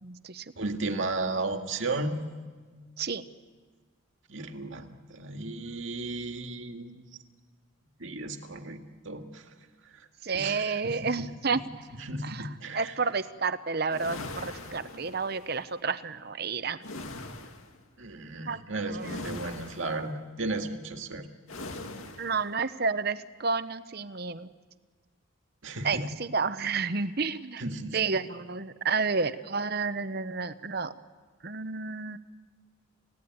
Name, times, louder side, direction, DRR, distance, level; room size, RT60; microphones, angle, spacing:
voice 1, 0.0-0.4 3.0-3.2 10.2-11.6 12.2-12.5 12.7-16.8 18.4-18.6 18.9-19.2 22.2-24.5 25.8-27.6 27.9-30.9 31.4-32.2, right 4 dB, 50° right, 13 dB, 0.9 m, -30 dB
voice 2, 0.6-2.2 4.3-7.0 8.0-9.4 10.3-11.6 11.9-12.9 18.0-21.3 25.6-26.1 27.6-28.1, right 2 dB, 70° right, 5 dB, 2.0 m, -35 dB
sound 1, 13.9-15.5 16.8-17.8 19.0-20.1 21.5-22.4, left 2 dB, 85° left, 2.2 m, -41 dB
30.0 x 16.5 x 9.5 m, 1.5 s
head